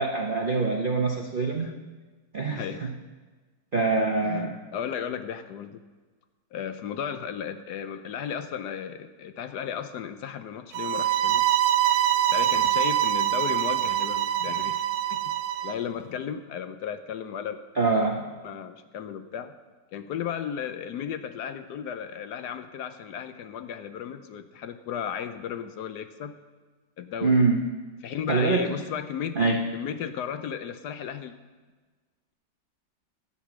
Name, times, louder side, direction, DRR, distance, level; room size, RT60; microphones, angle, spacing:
voice 1, 0.0-1.7 2.3-2.9 3.7-4.6 17.8-18.2 27.2-27.6 28.3-28.7 29.4-29.6, right 3 dB, 50° right, 1 dB, 0.6 m, -24 dB
voice 2, 2.6-2.9 4.2-5.8 6.5-11.5 12.3-15.3 15.6-17.6 18.4-19.5 19.9-26.3 27.0-27.4 28.0-29.4 29.7-31.3, left 8 dB, 70° left, 10 dB, 1.1 m, -35 dB
sound 1, 10.7-15.7, right 12 dB, 90° right, 1.4 m, -24 dB
12.5 x 8.3 x 6.0 m, 1.4 s
omnidirectional pair, 2.0 m